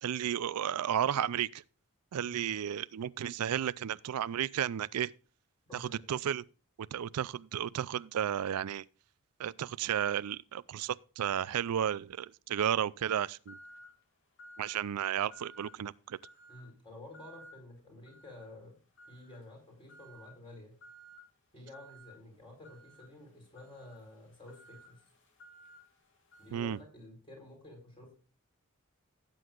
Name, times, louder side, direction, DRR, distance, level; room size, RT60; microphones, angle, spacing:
voice 1, 0.0-1.6 2.1-5.1 5.7-6.4 6.8-8.8 9.4-13.6 14.6-16.2 26.5-26.8, right 9 dB, 90° right, 0.4 m, -33 dB
voice 2, 5.7-6.1 16.5-18.8 19.1-20.8 21.5-25.0 26.4-28.1, left 1 dB, 25° left, 4.5 m, -51 dB
sound 1, 13.5-14.0 14.4-14.9 15.3-15.8 16.2-16.7 17.1-17.6 18.1-18.5 19.0-19.4 19.9-20.3 20.8-21.2 21.7-22.1 22.6-26.8, right 1 dB, 60° left, 2.4 m, -55 dB
16.5 x 7.8 x 2.4 m
head